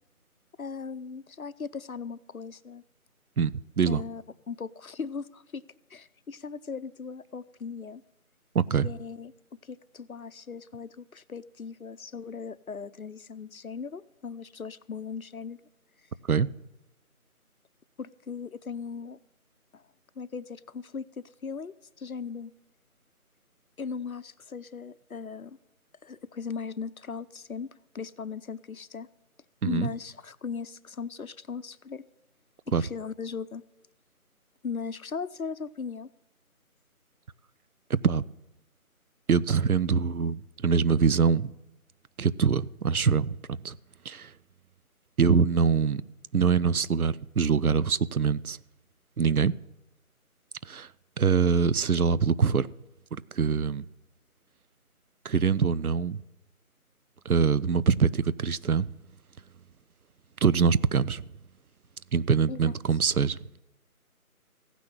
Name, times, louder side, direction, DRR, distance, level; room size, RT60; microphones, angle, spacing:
voice 1, 0.6-2.8 3.9-5.6 5.9-8.0 8.8-9.3 9.6-15.6 18.0-19.2 19.7-19.8 20.2-22.5 23.8-25.6 26.0-27.7 27.9-29.1 29.6-32.0 32.8-33.6 34.6-36.1 62.5-62.7, left 5 dB, 70° left, 0.7 m, -38 dB
voice 2, 3.4-4.0 8.5-8.9 16.2-16.5 29.6-29.9 32.7-32.8 37.9-38.2 39.3-41.5 42.2-43.8 44.0-44.3 45.2-46.0 46.3-48.6 49.2-49.6 50.6-50.9 51.2-52.7 53.1-53.9 55.2-56.2 57.2-58.9 60.4-61.2 62.1-63.4, right 6 dB, 75° right, 0.6 m, -24 dB
15.5 x 6.2 x 9.5 m
figure-of-eight pair, 175°, 44 cm